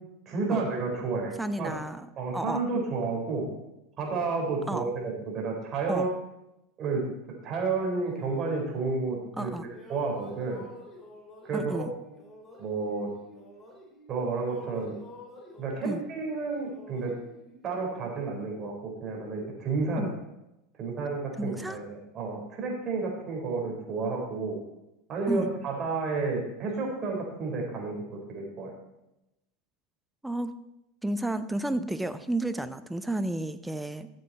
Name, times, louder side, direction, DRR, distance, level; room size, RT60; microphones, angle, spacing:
voice 1, 0.3-1.8 2.2-3.5 4.0-6.1 6.8-7.0 7.4-9.5 9.9-10.6 11.4-11.9 12.6-13.1 14.1-14.9 15.6-17.1 17.6-20.1 20.8-24.6 25.1-28.0 28.3-28.7, right 4 dB, 40° right, 0 dB, 4.3 m, -31 dB
voice 2, 1.4-2.1 2.3-2.6 4.7-4.9 5.9-6.1 9.4-9.7 11.5-11.9 15.8-16.0 20.0-20.2 21.4-21.8 25.3-25.5 30.2-30.6 31.0-34.1, right 1 dB, 5° right, 12 dB, 0.7 m, -31 dB
sound 1, 8.0-9.4 9.7-14.1 14.4-18.2, left 2 dB, 15° left, 3.2 m, -50 dB
13.5 x 7.7 x 4.2 m, 0.89 s
hypercardioid pair, 95°, 0 cm